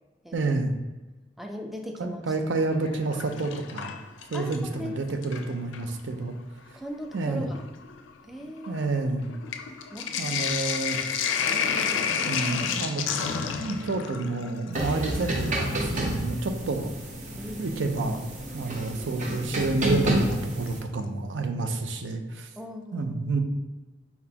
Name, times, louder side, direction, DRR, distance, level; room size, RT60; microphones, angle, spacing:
voice 1, 0.3-0.7 2.0-3.9 4.3-6.4 7.1-7.5 8.7-9.3 10.2-11.0 12.3-13.0 13.6-16.9 17.6-18.2 18.5-22.5 22.9-23.4, right 3 dB, 80° right, 6 dB, 0.5 m, -29 dB
voice 2, 1.4-2.2 4.3-5.0 6.7-7.6 8.2-8.9 9.9-10.4 11.5-12.1 17.4-17.8 22.6-23.4, equal, ahead, 3 dB, 0.4 m, -39 dB
Sink (filling or washing), 2.7-4.7 5.1-5.9 6.7-6.8 7.1-16.2 18.0-18.1 19.9-20.3 20.7-20.8 21.0-21.1, left 6 dB, 90° left, 0.4 m, -31 dB
sound 1, 14.7-20.8, right 1 dB, 40° right, 0.8 m, -30 dB
4.1 x 4.0 x 2.8 m, 1.2 s
head